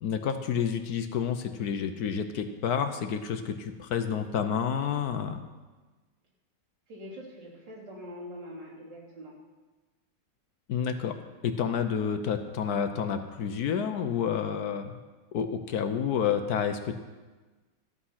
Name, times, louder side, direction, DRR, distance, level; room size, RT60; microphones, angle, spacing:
voice 1, 0.0-5.4 10.7-11.2 11.4-15.0 15.3-17.0, left 7 dB, 65° left, 8 dB, 1.2 m, -29 dB
voice 2, 6.9-9.3, equal, 85° right, -6 dB, 3.8 m, -43 dB
13.0 x 8.7 x 5.7 m, 1.3 s
omnidirectional pair, 1.9 m